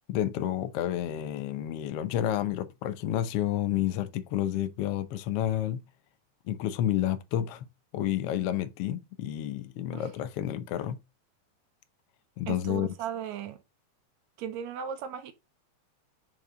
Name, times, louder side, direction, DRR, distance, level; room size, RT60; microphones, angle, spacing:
voice 1, 0.1-5.8 6.5-7.7 7.9-11.0 12.4-12.9, left 12 dB, 75° left, 1.4 m, -30 dB
voice 2, 12.5-13.6 14.4-15.3, right 9 dB, 75° right, 2.0 m, -36 dB
5.5 x 4.6 x 4.9 m
omnidirectional pair, 3.5 m